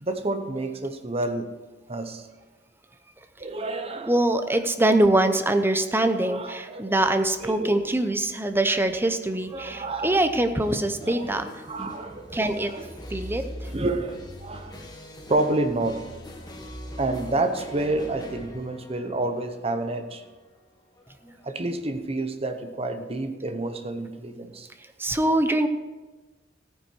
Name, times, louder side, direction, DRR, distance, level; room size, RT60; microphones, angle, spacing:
voice 1, 0.0-1.6 1.9-2.3 3.4-4.1 6.2-6.9 7.4-7.9 9.5-10.2 11.0-11.3 11.7-12.9 13.7-14.7 15.3-16.1 17.0-20.2 21.4-24.7, right 2 dB, 30° right, 7 dB, 0.9 m, -29 dB
voice 2, 4.1-11.5 11.8-11.9 12.3-12.7 13.1-13.5 21.2-21.4 25.0-25.7, right 1 dB, 10° right, 9 dB, 0.7 m, -23 dB
sound 1, 6.9-22.0, equal, 20° left, 1.6 m, -43 dB
14.5 x 9.3 x 4.5 m, 1.2 s
head